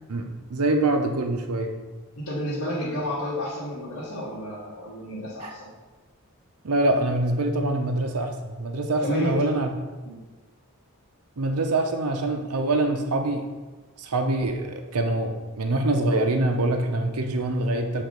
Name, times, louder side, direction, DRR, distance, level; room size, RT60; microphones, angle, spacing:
voice 1, 0.1-1.8 5.4-5.5 6.6-9.7 11.4-13.5 14.0-18.0, right 2 dB, 90° right, 5 dB, 0.7 m, -25 dB
voice 2, 2.2-5.7 9.0-9.3 10.0-10.2, equal, 85° left, -9 dB, 1.4 m, -31 dB
6.6 x 3.6 x 5.2 m, 1.2 s
head